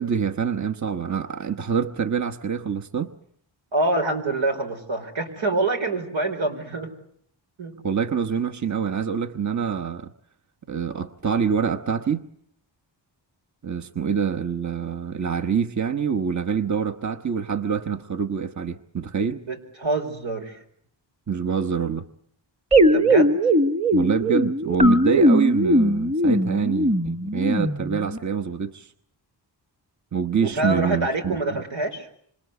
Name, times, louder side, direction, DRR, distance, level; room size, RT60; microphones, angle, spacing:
voice 1, 0.0-3.1 7.8-10.1 10.7-12.2 13.6-19.4 21.3-22.1 23.9-28.9 30.1-31.6, right 7 dB, 40° right, 5 dB, 1.1 m, -26 dB
voice 2, 3.7-6.9 7.6-7.7 19.5-20.6 22.9-23.3 30.4-32.1, right 2 dB, 85° right, 4 dB, 4.7 m, -26 dB
sound 1, 22.7-28.2, equal, 15° right, 1.3 m, -19 dB
27.0 x 26.5 x 8.2 m, 0.67 s
cardioid pair, 75°, 45 cm